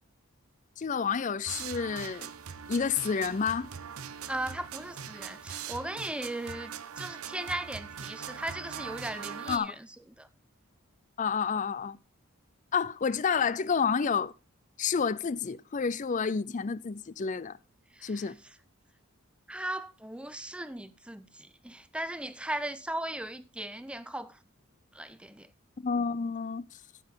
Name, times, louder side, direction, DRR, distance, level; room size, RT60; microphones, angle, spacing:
voice 1, 0.8-2.3 2.7-3.7 9.5-9.8 11.2-12.0 12.7-14.3 14.8-17.6 18.0-18.4 25.8-26.7, left 6 dB, 35° left, 0.4 m, -29 dB
sound 1, 1.4-9.6, right 7 dB, 85° right, 0.8 m, -41 dB
voice 2, 4.3-9.9 10.2-10.3 18.0-18.3 19.5-24.4 24.9-25.5, right 1 dB, 5° right, 0.6 m, -37 dB
14.5 x 7.5 x 3.8 m
head